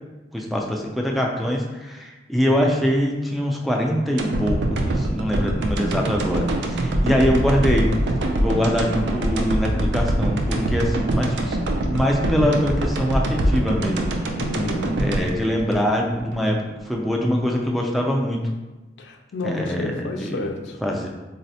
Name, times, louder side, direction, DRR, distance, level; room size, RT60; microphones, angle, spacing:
voice 1, 0.3-7.9 8.3-11.6 11.9-14.1 15.0-16.6 16.9-18.4 19.4-20.5 20.8-21.1, equal, ahead, -1 dB, 0.3 m, -23 dB
sound 1, 4.2-16.4 16.8-16.9, right 1 dB, 70° right, 0.4 m, -24 dB
voice 2, 14.4-15.0 19.0-20.8, left 2 dB, 75° left, 5 dB, 0.4 m, -30 dB
4.0 x 2.0 x 2.7 m, 1.2 s
head